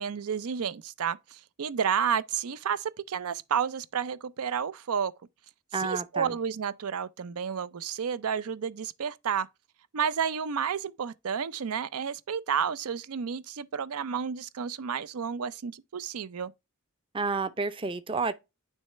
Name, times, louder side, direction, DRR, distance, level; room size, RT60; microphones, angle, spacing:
voice 1, 0.0-5.1 5.8-9.5 9.9-16.5, right 7 dB, 90° right, 0.5 m, -31 dB
voice 2, 5.7-6.4 17.1-18.3, right 4 dB, 25° right, 0.5 m, -30 dB
9.7 x 3.2 x 3.0 m
head